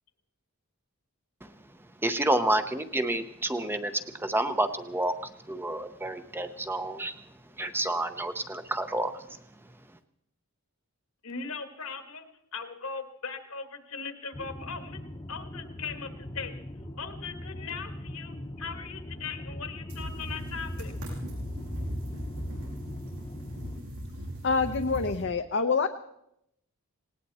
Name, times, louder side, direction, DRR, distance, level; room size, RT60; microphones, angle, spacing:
voice 1, 2.0-3.9 4.2-5.1 5.5-7.2 7.6-9.1, right 1 dB, 10° right, 9 dB, 0.7 m, -29 dB
voice 2, 11.2-12.3 12.5-15.0 15.3-16.5 17.0-20.9, left 5 dB, 75° left, 8 dB, 1.8 m, -39 dB
sound 1, 14.3-23.8, left 1 dB, 20° left, 1.0 m, -41 dB
sound 2, 19.9-25.2, equal, 85° right, 6.8 m, -38 dB
voice 3, 24.4-25.9, left 4 dB, 55° left, 5 dB, 0.7 m, -26 dB
19.0 x 18.0 x 4.2 m, 0.78 s
head